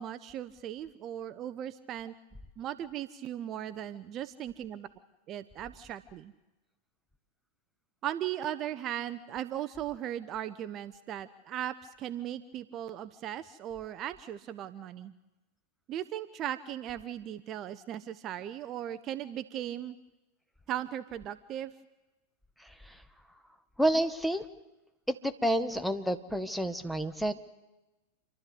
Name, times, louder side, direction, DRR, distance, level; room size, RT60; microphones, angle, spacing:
voice 1, 0.0-2.1 2.6-4.9 5.3-6.3 8.0-15.1 15.9-20.0 20.7-21.7, right 11 dB, 35° right, 11 dB, 0.6 m, -37 dB
voice 2, 23.8-24.5 25.1-27.3, right 1 dB, ahead, 8 dB, 1.1 m, -29 dB
28.0 x 12.0 x 8.3 m, 1.1 s
figure-of-eight pair, 90°, 0 cm